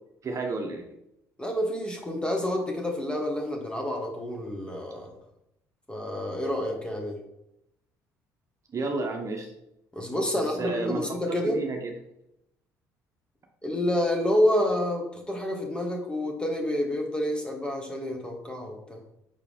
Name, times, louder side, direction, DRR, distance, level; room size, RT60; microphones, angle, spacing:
voice 1, 0.2-0.9 8.7-9.5 10.3-11.9, right 3 dB, 40° right, 2 dB, 1.0 m, -32 dB
voice 2, 1.4-5.1 5.9-7.2 9.9-11.6 13.6-19.0, left 1 dB, 10° left, 1 dB, 1.7 m, -28 dB
5.8 x 4.5 x 3.6 m, 0.81 s
supercardioid pair, 65°, 8 cm